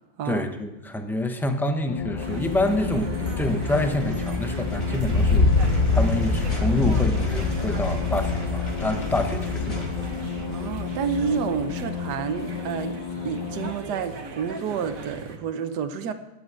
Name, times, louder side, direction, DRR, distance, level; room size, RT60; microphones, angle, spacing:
voice 1, 0.2-9.8, left 1 dB, ahead, 6 dB, 0.4 m, -27 dB
sound 1, 1.9-13.7, left 6 dB, 80° left, 1.3 m, -33 dB
sound 2, 2.0-12.6, left 3 dB, 50° left, 3.5 m, -26 dB
sound 3, 2.2-15.4, right 3 dB, 55° right, 1.6 m, -40 dB
voice 2, 10.5-13.0 13.2-16.1, right 6 dB, 70° right, 8 dB, 1.5 m, -29 dB
12.5 x 7.9 x 8.3 m, 1.0 s
omnidirectional pair, 1.9 m